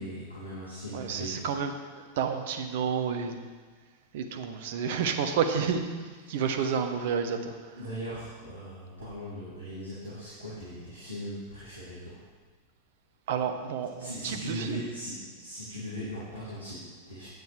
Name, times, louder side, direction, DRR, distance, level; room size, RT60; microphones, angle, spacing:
voice 1, 0.0-1.5 6.2-6.5 7.7-12.2 14.0-17.3, equal, 85° left, -10 dB, 2.3 m, -39 dB
voice 2, 0.9-1.7 2.0-3.4 4.1-7.5 13.3-14.8, right 6 dB, 55° right, 6 dB, 0.8 m, -30 dB
9.2 x 9.2 x 3.3 m, 1.5 s
figure-of-eight pair, 90°, 0 cm